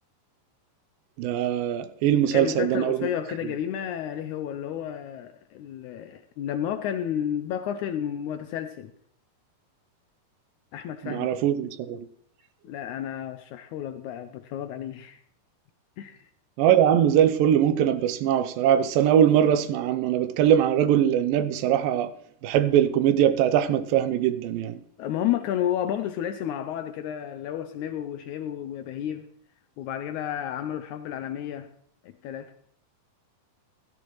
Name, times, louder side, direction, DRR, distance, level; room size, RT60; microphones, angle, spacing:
voice 1, 1.2-3.1 11.0-12.1 16.6-22.1 22.4-24.8, right 10 dB, 85° right, 2.4 m, -22 dB
voice 2, 2.1-8.9 10.7-11.3 12.6-15.2 16.0-16.2 25.0-29.3 29.8-31.7 32.0-32.5, left 10 dB, 80° left, 1.8 m, -31 dB
16.0 x 12.0 x 3.1 m
omnidirectional pair, 3.9 m